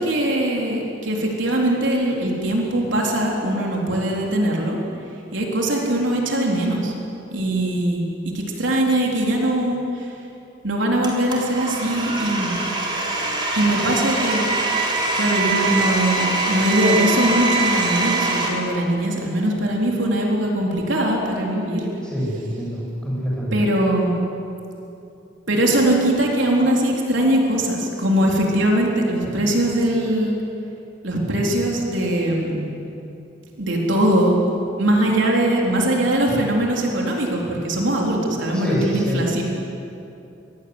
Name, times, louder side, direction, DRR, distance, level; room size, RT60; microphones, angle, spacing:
voice 1, 0.0-4.8 5.3-6.9 7.3-10.1 10.6-12.6 13.5-14.5 15.2-21.9 23.5-24.2 25.5-30.3 31.0-32.6 33.6-34.4 34.8-39.4, right 1 dB, 75° right, -1 dB, 3.9 m, -21 dB
Domestic sounds home sounds, 11.0-18.5, right 2 dB, 25° right, 3.8 m, -23 dB
voice 2, 22.0-23.6 38.5-39.2, equal, 5° left, -5 dB, 7.3 m, -26 dB
25.5 x 20.5 x 8.0 m, 2.8 s
head